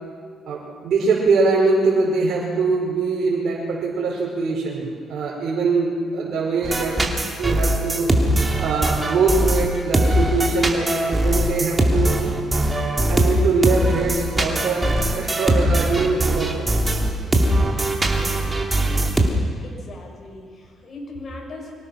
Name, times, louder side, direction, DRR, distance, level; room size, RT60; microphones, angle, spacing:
voice 1, 0.5-7.0 7.3-8.1 8.6-12.2 13.1-17.1, right 4 dB, 65° right, -6 dB, 5.3 m, -22 dB
sound 1, 6.6-19.3, right 1 dB, 20° right, 2.9 m, -21 dB
voice 2, 19.6-21.7, left 2 dB, 40° left, 0 dB, 6.3 m, -38 dB
25.0 x 18.0 x 6.2 m, 2.1 s
cardioid pair, 90°, 0 cm